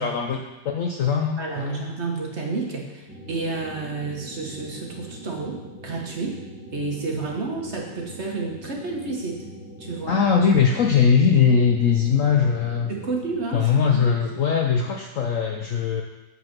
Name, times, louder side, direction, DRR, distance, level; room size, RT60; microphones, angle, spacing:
voice 1, 0.0-1.8 10.1-12.9 13.5-16.0, left 6 dB, 65° left, 2 dB, 0.8 m, -21 dB
voice 2, 1.4-6.4 6.7-9.4 9.8-10.2 12.9-14.0, right 3 dB, 40° right, 0 dB, 1.3 m, -30 dB
sound 1, 3.1-13.4, equal, 5° right, 1.1 m, -41 dB
7.7 x 5.8 x 5.9 m, 1.1 s
omnidirectional pair, 2.0 m